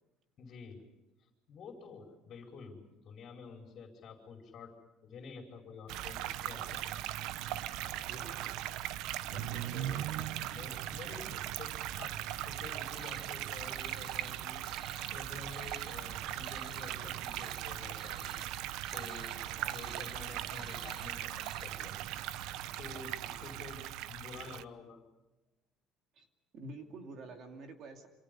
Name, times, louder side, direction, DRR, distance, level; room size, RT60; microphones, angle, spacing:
voice 1, 0.4-0.8 1.5-4.7 5.0-6.8 7.6-8.4 9.3-10.1 10.5-12.2 12.4-14.6 15.1-18.5 18.9-19.4 19.7-22.0 22.8-25.0, left 4 dB, 35° left, 3 dB, 5.2 m, -49 dB
sound 1, 5.9-24.6, right 13 dB, 65° right, 0.9 m, -39 dB
voice 2, 8.0-8.6 19.6-20.2 23.2-23.6 26.1-26.3 26.5-28.1, right 2 dB, 40° right, 5 dB, 2.6 m, -49 dB
sound 2, 13.0-13.3 13.7-14.3 14.6-15.1 15.5-16.0 16.4-17.0 17.2-17.6 17.9-18.5 18.8-19.4 19.7-20.2 20.5-21.1 21.4-21.6, left 1 dB, 5° right, 6.6 m, -56 dB
27.5 x 27.0 x 5.5 m, 0.98 s
cardioid pair, 170°, 0 cm